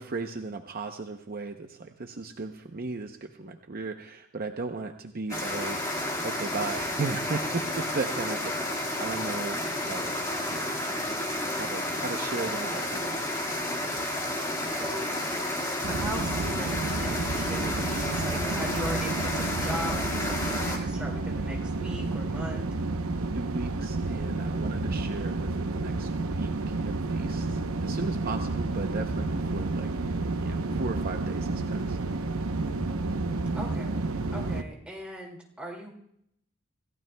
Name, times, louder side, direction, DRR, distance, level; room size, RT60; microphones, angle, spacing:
voice 1, 0.0-5.8 6.2-9.6 9.9-10.1 10.5-10.7 11.6-13.2 23.3-32.0, right 3 dB, 45° right, 5 dB, 0.7 m, -36 dB
sound 1, 5.3-20.8, left 1 dB, 15° left, 1.8 m, -31 dB
voice 2, 9.9-10.4 12.5-12.9 14.7-15.2 15.9-22.7 33.5-34.0 34.3-35.9, equal, 5° right, -1 dB, 2.2 m, -39 dB
sound 2, 15.8-34.6, right 3 dB, 75° right, 0.8 m, -30 dB
26.0 x 15.0 x 2.2 m, 0.73 s
head